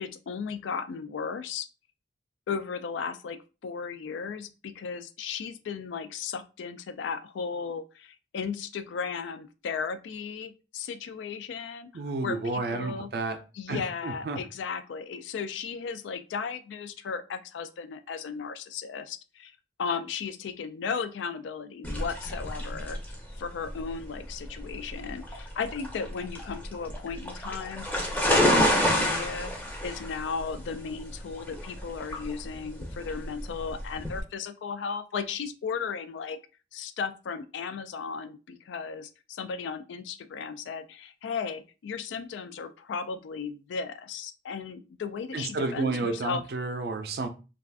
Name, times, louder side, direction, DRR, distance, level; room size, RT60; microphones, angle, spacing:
voice 1, 0.0-1.7 2.5-13.1 13.5-23.0 23.4-27.9 28.2-36.4 36.7-46.4, left 5 dB, 80° left, 0.3 m, -35 dB
voice 2, 11.9-13.4 13.7-14.4 45.3-47.3, right 3 dB, 55° right, 0.4 m, -31 dB
sound 1, 21.8-34.2, left 1 dB, 10° left, 0.5 m, -29 dB
2.4 x 2.3 x 3.3 m
head